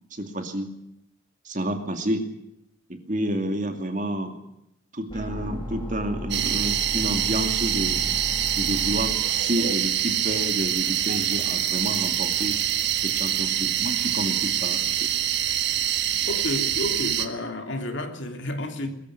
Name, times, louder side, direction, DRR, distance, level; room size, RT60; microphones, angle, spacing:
voice 1, 0.1-0.7 1.4-2.2 2.9-4.4 4.9-8.0 8.6-12.6 13.0-15.1, right 1 dB, 35° right, 2.4 m, -29 dB
sound 1, 5.1-9.1, left 1 dB, 20° left, 6.4 m, -35 dB
sound 2, 6.3-17.3, right 10 dB, 50° right, 1.6 m, -25 dB
voice 2, 16.3-18.9, left 1 dB, 55° left, 3.0 m, -31 dB
22.5 x 14.5 x 9.9 m
head